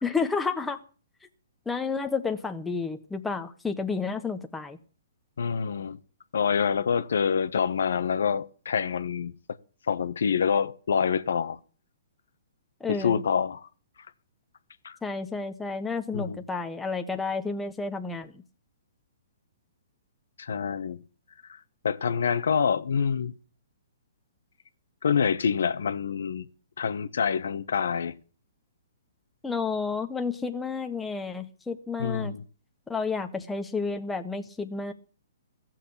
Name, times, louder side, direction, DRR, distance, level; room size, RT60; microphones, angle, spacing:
voice 1, 0.0-0.8 1.6-4.8 12.8-13.2 15.0-18.4 29.4-32.3 32.9-34.9, left 4 dB, 5° left, 1.4 m, -31 dB
voice 2, 5.4-6.0 6.3-9.3 9.9-11.6 12.9-13.7 14.8-15.0 16.1-16.4 20.4-21.0 21.5-23.3 25.0-26.5 26.8-28.1 32.0-32.4, left 6 dB, 75° left, 1.1 m, -26 dB
15.5 x 7.6 x 8.4 m
hypercardioid pair, 140°, 0 cm